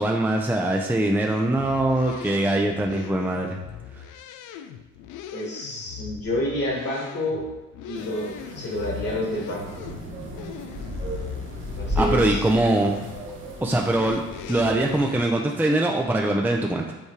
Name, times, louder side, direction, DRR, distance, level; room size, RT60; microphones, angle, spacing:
voice 1, 0.0-3.6 12.0-13.0 13.6-14.2 14.5-16.9, right 1 dB, 5° right, 1 dB, 0.5 m, -22 dB
sound 1, 1.3-15.3, left 9 dB, 85° left, 0.5 m, -40 dB
voice 2, 5.3-7.5 7.8-9.6 11.8-12.4, left 1 dB, 50° left, -3 dB, 1.9 m, -29 dB
sound 2, 7.9-15.2, equal, 40° right, 1.4 m, -34 dB
5.5 x 3.6 x 4.7 m, 1.1 s
cardioid pair, 90°, 30 cm